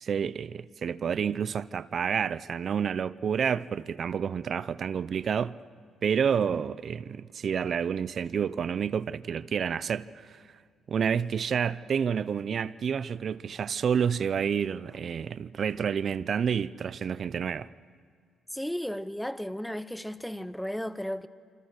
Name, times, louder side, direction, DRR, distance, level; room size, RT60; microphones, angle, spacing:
voice 1, 0.0-5.6 6.0-10.4 10.9-17.7, right 7 dB, 55° right, 0.6 m, -29 dB
voice 2, 18.5-21.3, equal, 5° left, 0.8 m, -34 dB
27.0 x 27.0 x 6.4 m
cardioid pair, 90°, 0 cm